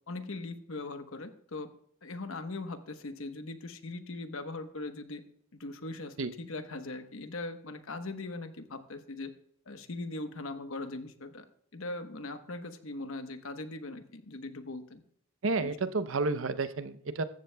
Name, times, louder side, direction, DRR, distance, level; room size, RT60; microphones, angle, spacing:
voice 1, 0.1-1.7 2.0-5.2 5.5-9.3 9.7-11.4 11.7-15.0 15.6-15.7, left 2 dB, 75° left, 8 dB, 1.0 m, -40 dB
voice 2, 15.4-17.2, right 3 dB, 65° right, 12 dB, 0.6 m, -31 dB
14.5 x 14.0 x 2.2 m, 0.65 s
head